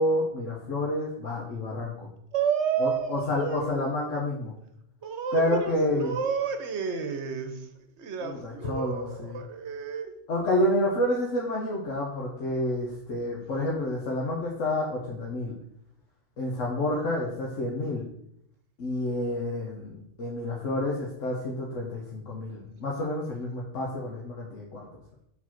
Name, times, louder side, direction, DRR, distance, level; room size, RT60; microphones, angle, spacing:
voice 1, 0.0-2.1 2.8-4.5 5.3-6.1 8.2-9.4 10.3-15.5 16.4-18.1 18.8-24.9, left 1 dB, 80° left, -3 dB, 1.3 m, -29 dB
voice 2, 2.3-3.8 5.0-7.7 8.0-10.1, right 6 dB, 65° right, 7 dB, 1.1 m, -31 dB
4.7 x 4.0 x 5.8 m, 0.76 s
omnidirectional pair, 1.3 m